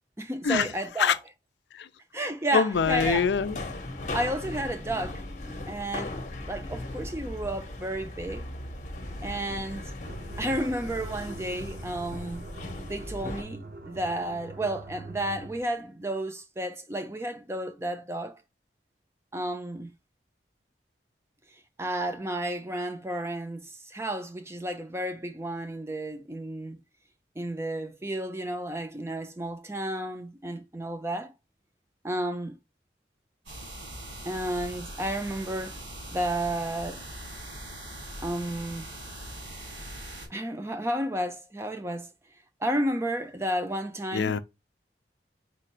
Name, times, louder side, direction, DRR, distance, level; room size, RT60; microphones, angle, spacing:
voice 1, 0.2-1.2 2.1-3.2 4.1-5.2 5.7-6.2 6.5-8.4 9.2-9.9 10.4-12.4 12.9-18.4 19.3-19.9 21.8-26.8 27.4-31.3 32.0-32.6 34.2-35.8 36.1-37.0 38.2-38.9 40.3-42.1 42.6-44.4, right 1 dB, 15° right, 0.5 m, -32 dB
voice 2, 2.5-3.6 44.1-44.4, left 6 dB, 70° left, 0.4 m, -24 dB
sound 1, 2.7-13.4, left 2 dB, 40° left, 0.8 m, -38 dB
sound 2, 10.0-15.7, right 3 dB, 50° right, 0.7 m, -44 dB
sound 3, 33.5-40.3, right 1 dB, 90° right, 2.9 m, -41 dB
4.4 x 2.5 x 4.1 m
head